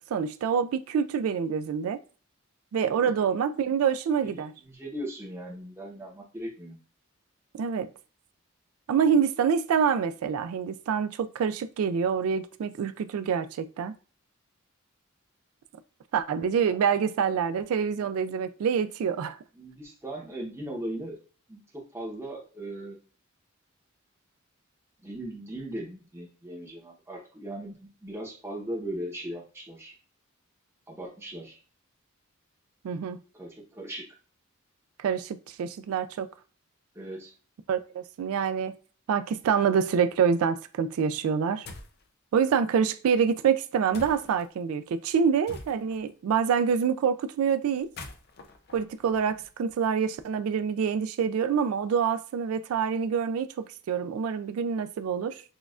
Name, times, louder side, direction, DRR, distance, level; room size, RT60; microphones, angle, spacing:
voice 1, 0.0-2.0 2.7-4.5 7.5-7.9 8.9-13.9 16.1-19.4 32.8-33.2 35.0-36.3 37.7-38.8 39.1-41.7 42.3-47.9 48.7-53.5 53.9-55.4, right 7 dB, 90° right, 0.3 m, -26 dB
voice 2, 4.6-6.8 16.7-16.8 18.0-18.1 19.6-21.2 21.5-21.6 21.9-23.0 25.0-30.0 30.9-31.6 33.3-34.1 36.9-37.3, right 1 dB, 10° right, 0.8 m, -38 dB
sound 1, 41.6-42.0 43.9-44.5 45.5-46.1 47.8-49.7, left 3 dB, 50° left, 0.5 m, -45 dB
6.1 x 2.3 x 2.4 m
head